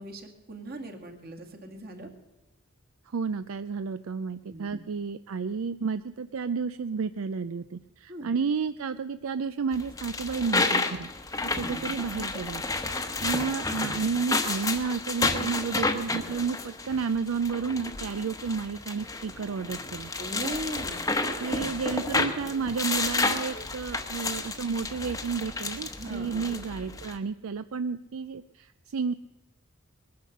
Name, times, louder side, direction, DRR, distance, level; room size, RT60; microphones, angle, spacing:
voice 1, 0.0-2.1 4.4-4.8 8.1-8.3 11.5-12.0 20.2-21.6 26.0-26.5, right 1 dB, 45° right, 3 dB, 2.2 m, -39 dB
voice 2, 3.1-11.1 11.4-12.6 13.0-20.1 21.4-29.1, right 5 dB, 70° right, 12 dB, 0.4 m, -31 dB
sound 1, 9.7-27.1, left 3 dB, 15° left, 1.0 m, -31 dB
21.0 x 10.5 x 6.7 m, 1.0 s
head